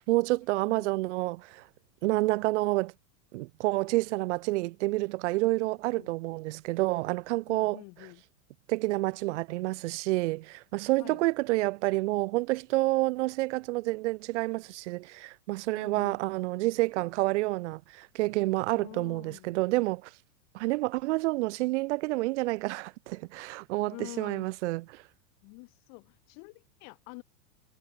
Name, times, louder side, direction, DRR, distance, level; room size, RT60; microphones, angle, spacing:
voice 1, 0.0-1.6 2.0-2.9 3.3-7.8 8.7-20.1 20.5-25.0, right 20 dB, 45° right, 2.9 m, -29 dB
voice 2, 7.5-8.2 11.0-11.2 15.7-16.2 18.7-19.6 23.9-24.5 25.4-27.2, left 34 dB, 35° left, 4.4 m, -47 dB
supercardioid pair, 170°, 47 cm